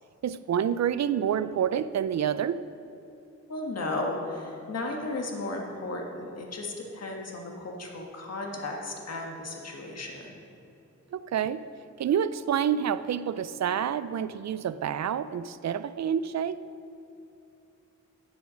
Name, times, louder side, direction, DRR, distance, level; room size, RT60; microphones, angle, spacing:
voice 1, 0.2-2.6 11.1-11.6 12.0-16.6, right 8 dB, 65° right, 15 dB, 0.4 m, -28 dB
voice 2, 3.5-10.4, left 2 dB, 60° left, 0 dB, 1.5 m, -35 dB
10.5 x 7.0 x 6.2 m, 2.8 s
wide cardioid pair, 95°, 29 cm